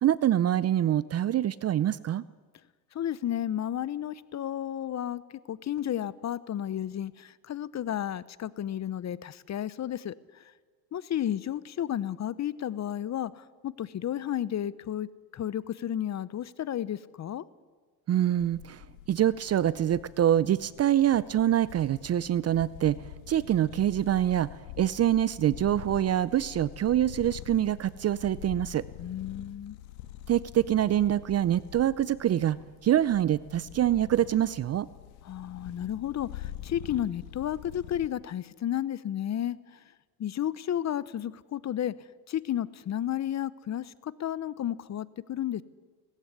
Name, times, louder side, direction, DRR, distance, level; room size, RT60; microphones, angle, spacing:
voice 1, 0.0-2.2 18.1-18.8 19.1-23.0 23.3-24.5 24.8-28.8 30.3-32.6 32.8-34.9, right 11 dB, 30° right, 19 dB, 0.5 m, -25 dB
voice 2, 2.9-5.2 5.5-10.4 10.9-15.1 15.3-17.4 29.0-29.8 35.2-39.8 40.2-41.9 42.3-45.6, left 11 dB, 35° left, 19 dB, 0.8 m, -32 dB
sound 1, 18.3-38.1, left 12 dB, 80° left, 1.6 m, -45 dB
18.0 x 15.0 x 9.8 m, 1.5 s
supercardioid pair, 90°, 49 cm